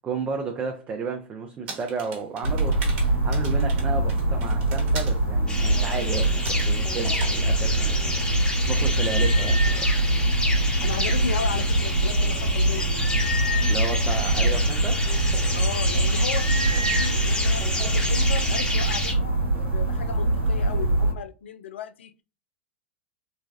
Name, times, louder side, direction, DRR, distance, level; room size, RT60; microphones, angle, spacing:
voice 1, 0.0-10.0 13.7-15.0, right 5 dB, 25° right, 0.5 m, -33 dB
sound 1, 1.7-5.2 6.1-6.7 7.1-7.4, right 4 dB, 60° right, 1.1 m, -39 dB
sound 2, 2.4-21.1, right 2 dB, 85° right, 1.0 m, -23 dB
sound 3, 5.5-19.1, left 2 dB, 15° left, 1.0 m, -30 dB
voice 2, 10.8-13.1 15.5-22.1, left 6 dB, 75° left, 0.4 m, -35 dB
3.2 x 2.2 x 2.5 m
hypercardioid pair, 100°, 6 cm